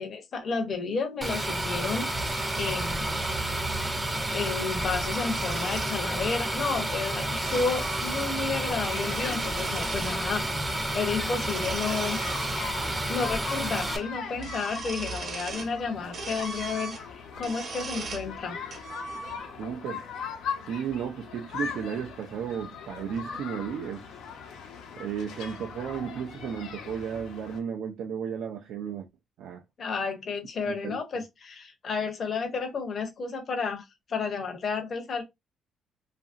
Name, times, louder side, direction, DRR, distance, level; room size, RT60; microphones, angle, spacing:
voice 1, 0.0-2.1 2.6-3.2 4.3-10.5 10.9-12.2 13.1-17.0 17.4-18.6 29.8-33.8 34.1-35.2, left 4 dB, 40° left, 0.6 m, -31 dB
sound 1, 1.2-14.0, right 1 dB, 10° right, 0.5 m, -30 dB
sound 2, 2.1-3.4 4.7-6.0 6.9-8.5 8.8-10.2 11.4-13.0 13.3-13.4 13.8-14.1 14.4-15.8 16.1-18.3 18.7-19.7, right 4 dB, 45° right, 0.8 m, -39 dB
sound 3, 8.8-27.6, left 6 dB, 90° left, 0.8 m, -41 dB
voice 2, 19.6-20.0 20.7-24.1 25.0-29.1 29.4-29.6 30.7-31.2, right 7 dB, 70° right, 0.4 m, -34 dB
2.8 x 2.5 x 2.4 m
cardioid pair, 135°, 0 cm